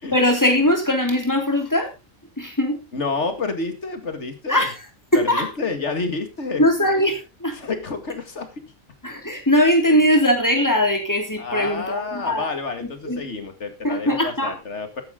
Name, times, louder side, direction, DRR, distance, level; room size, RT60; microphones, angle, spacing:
voice 1, 0.1-1.9 2.4-2.8 4.5-4.7 5.1-5.5 6.6-7.6 9.0-12.4 13.0-13.2 13.8-14.5, left 1 dB, 15° left, 3 dB, 3.2 m, -20 dB
voice 2, 2.9-4.7 5.1-6.6 7.5-8.5 9.9-10.0 11.4-15.0, left 4 dB, 55° left, 8 dB, 2.3 m, -29 dB
14.0 x 10.5 x 3.7 m, 0.28 s
omnidirectional pair, 1.4 m